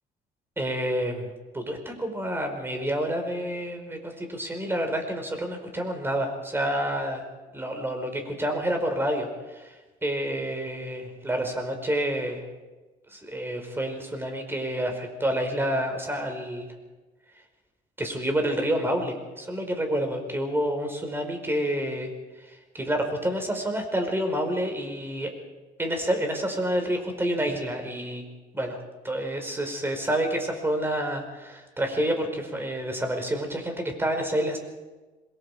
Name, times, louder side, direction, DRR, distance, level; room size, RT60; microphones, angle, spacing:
voice 1, 0.6-1.3 1.5-7.2 7.5-9.7 10.0-12.4 13.1-16.7 18.0-22.1 22.4-25.3 25.8-28.2 28.5-28.8 29.0-34.6, right 1 dB, 15° right, 4 dB, 5.0 m, -28 dB
27.0 x 21.5 x 5.0 m, 1.2 s
cardioid pair, 110°, 17 cm